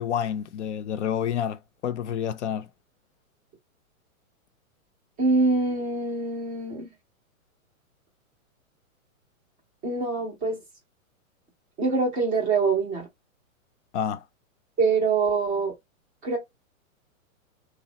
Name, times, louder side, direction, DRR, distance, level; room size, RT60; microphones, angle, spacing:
voice 1, 0.0-2.7 13.9-14.2, left 9 dB, 55° left, 0.5 m, -29 dB
voice 2, 5.2-6.9 9.8-10.6 11.8-13.1 14.8-15.7 16.2-16.4, right 4 dB, 10° right, 0.4 m, -24 dB
3.4 x 2.0 x 3.8 m
hypercardioid pair, 155°, 42 cm